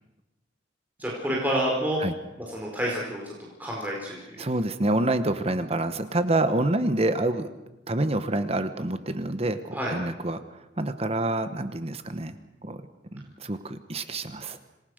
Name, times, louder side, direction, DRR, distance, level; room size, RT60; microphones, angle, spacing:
voice 1, 1.0-2.0 2.4-3.2 3.6-4.4 9.7-9.9, right 1 dB, 10° right, -3 dB, 4.9 m, -28 dB
voice 2, 4.4-7.5 7.9-10.4 10.8-12.4 12.6-12.8 13.1-14.6, right 2 dB, 35° right, 10 dB, 1.1 m, -27 dB
27.0 x 20.0 x 6.6 m, 0.98 s
head